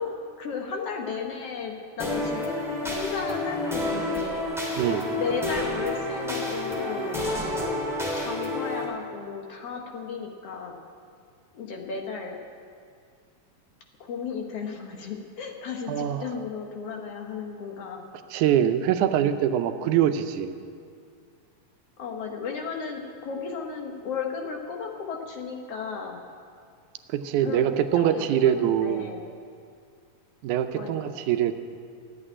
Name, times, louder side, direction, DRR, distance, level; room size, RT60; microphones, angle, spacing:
voice 1, 0.0-2.4 2.8-4.5 5.1-7.8 8.2-10.8 11.5-12.4 14.0-18.1 22.0-26.2 27.4-27.6 27.9-29.2 30.7-31.1, left 5 dB, 60° left, 2 dB, 1.9 m, -34 dB
sound 1, 2.0-8.8, left 1 dB, ahead, 2.6 m, -29 dB
voice 2, 4.8-5.1 15.9-16.3 18.3-20.5 27.1-29.1 30.4-31.6, right 10 dB, 80° right, 8 dB, 2.1 m, -24 dB
13.5 x 8.7 x 9.8 m, 2.2 s
omnidirectional pair, 3.5 m